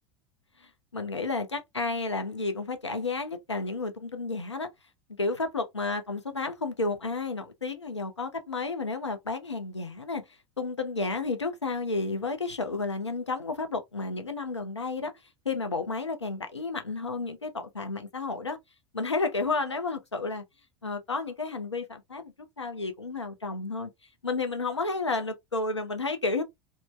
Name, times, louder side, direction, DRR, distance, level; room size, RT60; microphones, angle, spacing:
voice 1, 0.9-4.7 5.2-10.2 10.6-15.1 15.5-18.6 18.9-20.4 20.8-23.9 24.2-26.4, left 3 dB, 85° left, 0.5 m, -31 dB
3.1 x 2.1 x 2.4 m
figure-of-eight pair, 80°, 14 cm